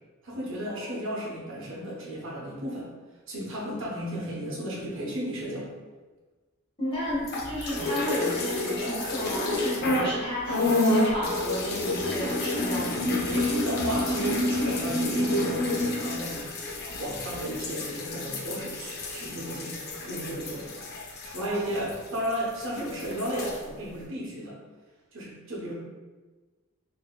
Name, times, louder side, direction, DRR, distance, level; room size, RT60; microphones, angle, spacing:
voice 1, 0.2-2.9 3.3-5.7 13.0-16.5 16.9-20.7 21.2-24.6 25.1-25.7, right 1 dB, 60° right, -4 dB, 0.8 m, -33 dB
voice 2, 6.8-13.4 21.4-21.8, equal, 25° left, -9 dB, 1.4 m, -33 dB
sound 1, 7.2-10.1 10.4-22.3 22.6-23.6, left 2 dB, 50° left, 0.5 m, -29 dB
3.9 x 2.7 x 2.2 m, 1.3 s
head